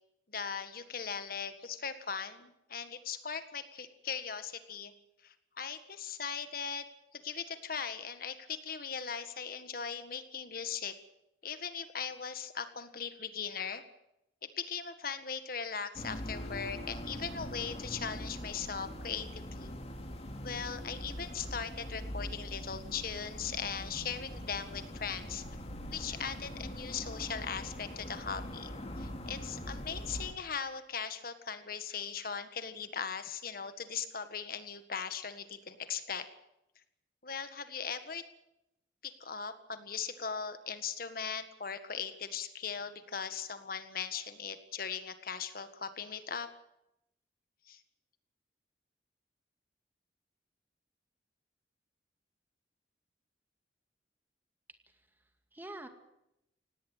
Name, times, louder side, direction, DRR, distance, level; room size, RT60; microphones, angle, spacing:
voice 1, 0.3-4.9 5.2-6.8 7.1-11.0 11.4-13.8 14.4-19.7 20.4-25.4 25.9-36.3 37.2-38.2 39.0-46.5 47.7-47.8, left 6 dB, 50° left, 10 dB, 1.7 m, -39 dB
sound 1, 15.9-30.3, equal, 35° left, 2.7 m, -42 dB
voice 2, 54.9-55.9, right 1 dB, 10° right, 6 dB, 2.1 m, -48 dB
18.5 x 18.0 x 9.1 m, 0.83 s
head